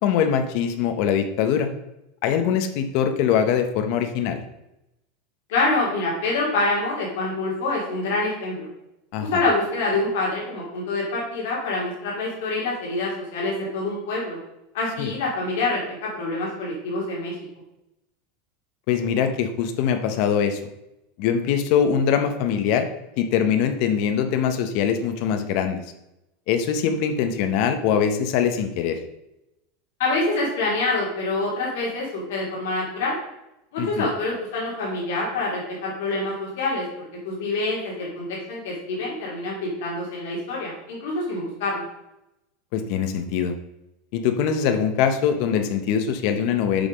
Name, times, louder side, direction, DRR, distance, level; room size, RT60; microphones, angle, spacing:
voice 1, 0.0-1.7 2.2-4.4 9.1-9.4 15.0-15.1 18.9-20.6 21.2-22.9 23.2-25.8 26.5-29.0 33.8-34.0 42.7-43.5 44.1-46.9, left 8 dB, 45° left, 7 dB, 0.7 m, -22 dB
voice 2, 5.5-8.7 9.2-14.4 14.7-17.3 30.0-33.2 33.7-41.8, left 2 dB, 65° left, -4 dB, 2.8 m, -26 dB
7.0 x 5.5 x 5.1 m, 0.89 s
supercardioid pair, 175°, 0 cm